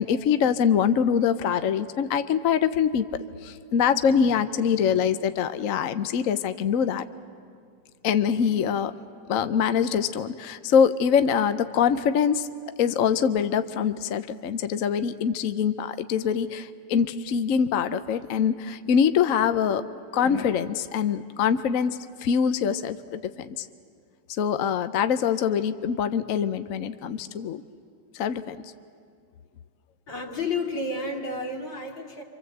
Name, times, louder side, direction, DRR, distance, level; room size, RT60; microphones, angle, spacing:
voice 1, 0.0-3.1 3.4-7.0 8.0-8.9 9.3-12.5 12.8-19.8 20.1-23.7 24.4-27.6 28.1-28.6, left 7 dB, 55° left, 11 dB, 1.0 m, -24 dB
voice 2, 30.1-32.2, left 3 dB, 85° left, 1 dB, 3.4 m, -31 dB
28.0 x 25.5 x 8.0 m, 2.3 s
omnidirectional pair, 2.0 m